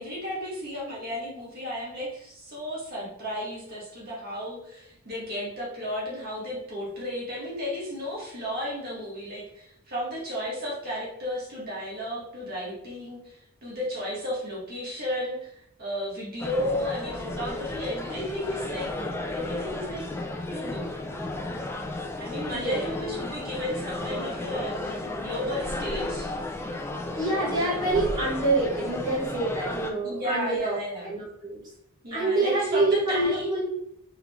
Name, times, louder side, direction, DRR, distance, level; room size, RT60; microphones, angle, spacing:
voice 1, 0.0-15.5 15.8-18.9 19.3-20.1 20.5-20.9 22.2-26.3 30.0-31.1 32.0-33.6, equal, 45° right, -6 dB, 1.5 m, -33 dB
sound 1, 16.4-29.9, left 2 dB, 10° left, 0.3 m, -33 dB
voice 2, 22.4-22.8 27.1-31.6 32.1-33.6, right 2 dB, 20° right, -10 dB, 1.2 m, -26 dB
3.6 x 3.1 x 3.5 m, 0.75 s
head